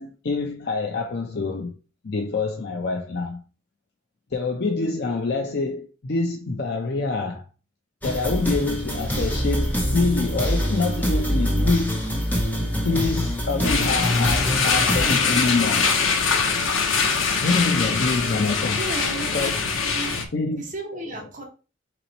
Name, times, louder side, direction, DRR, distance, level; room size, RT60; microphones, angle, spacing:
voice 1, 0.0-1.7 2.0-3.4 4.3-7.5 8.0-12.1 12.8-16.0 17.3-18.9 19.1-19.5 20.3-20.6 20.9-21.3, left 3 dB, 55° left, 0.5 m, -26 dB
sound 1, 8.0-15.2, equal, 10° left, 0.8 m, -25 dB
sound 2, 13.6-20.2, left 5 dB, 85° left, 0.8 m, -23 dB
voice 2, 18.8-19.6 19.8-20.2 20.6-21.4, right 2 dB, 40° right, 1.1 m, -34 dB
4.1 x 3.0 x 3.9 m
head